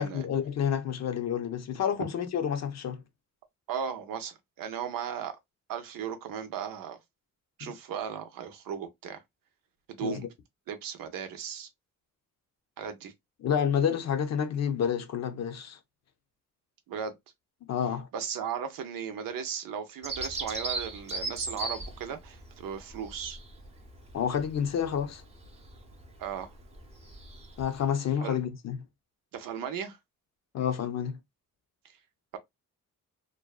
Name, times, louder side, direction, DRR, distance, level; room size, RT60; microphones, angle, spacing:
voice 1, 0.0-3.0 7.6-7.7 10.0-10.3 13.4-15.8 17.7-18.1 24.1-25.2 27.6-28.8 30.5-31.2, left 8 dB, 55° left, 0.5 m, -29 dB
voice 2, 3.7-5.3 5.7-7.0 7.6-9.2 9.9-10.3 10.7-11.7 12.8-13.1 16.9-17.2 18.1-23.4 26.2-26.5 28.2-28.4 29.3-30.0, right 8 dB, 85° right, 0.6 m, -36 dB
Bird vocalization bird call bird song, 20.0-27.9, right 2 dB, 20° right, 0.6 m, -39 dB
2.5 x 2.2 x 2.3 m
cardioid pair, 130°, 33 cm